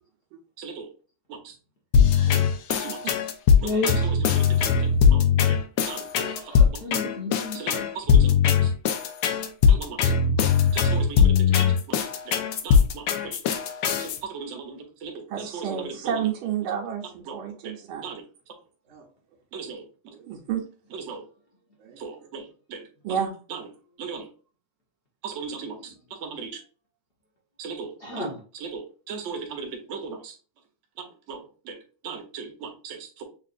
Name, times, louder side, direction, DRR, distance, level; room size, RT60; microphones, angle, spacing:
voice 1, 0.6-0.9 1.3-1.6 2.7-3.2 3.6-6.5 7.5-8.7 9.7-11.6 11.9-12.4 12.6-13.4 14.0-16.3 17.3-17.8 18.0-18.2 19.5-20.1 20.9-21.2 22.0-23.2 23.5-23.6 24.0-24.3 25.2-26.6 27.6-28.3 28.5-30.4 31.3-31.8 32.0-33.2, right 5 dB, 50° right, 2 dB, 0.9 m, -38 dB
sound 1, 1.9-14.2, left 7 dB, 85° left, 0.8 m, -20 dB
voice 2, 2.1-2.4 3.6-3.9 6.3-7.6 28.0-28.4, left 2 dB, 55° left, -2 dB, 0.6 m, -31 dB
voice 3, 15.3-18.0 18.9-19.0 20.2-20.6 21.8-22.0 23.0-23.3, right 8 dB, 80° right, 0 dB, 1.5 m, -30 dB
6.6 x 2.5 x 2.5 m, 0.37 s
omnidirectional pair, 2.3 m